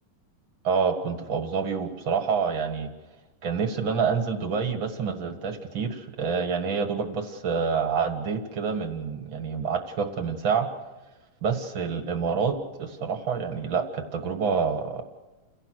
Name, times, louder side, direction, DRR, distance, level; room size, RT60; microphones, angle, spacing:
voice 1, 0.6-2.9 3.4-10.7 11.4-15.0, right 6 dB, 45° right, 6 dB, 1.8 m, -27 dB
29.5 x 17.0 x 6.5 m, 1.1 s
omnidirectional pair, 4.2 m